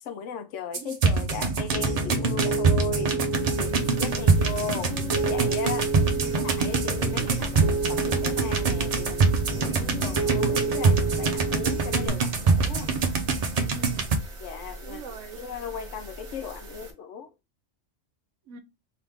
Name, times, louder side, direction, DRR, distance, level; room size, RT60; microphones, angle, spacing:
voice 1, 0.0-3.2 3.5-5.9 6.4-9.3 9.6-12.9 14.4-15.0 15.3-17.3, left 6 dB, 75° left, 0.9 m, -37 dB
sound 1, 0.7-14.2, right 4 dB, 90° right, 0.3 m, -25 dB
voice 2, 0.8-1.3 4.0-4.5 4.8-4.9 6.1-6.5 7.0-7.3 13.7-14.2 14.8-15.4 18.5-18.6, right 5 dB, 70° right, 0.9 m, -42 dB
Piano, 1.7-12.1, right 3 dB, 25° left, 1.1 m, -30 dB
sound 2, 3.2-16.9, right 2 dB, 45° right, 0.9 m, -44 dB
3.3 x 2.9 x 3.5 m
omnidirectional pair, 1.4 m